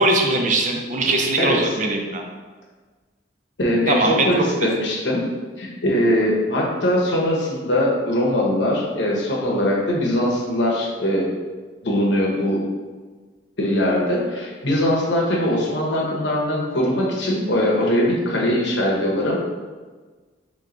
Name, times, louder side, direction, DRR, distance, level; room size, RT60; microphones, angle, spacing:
voice 1, 0.0-2.2 3.9-4.3 4.6-4.7, right 2 dB, 45° right, 2 dB, 0.5 m, -20 dB
voice 2, 3.6-5.3 5.6-11.3 11.8-12.6 13.6-19.4, left 1 dB, 70° left, -3 dB, 1.0 m, -21 dB
3.3 x 3.2 x 3.8 m, 1.4 s
head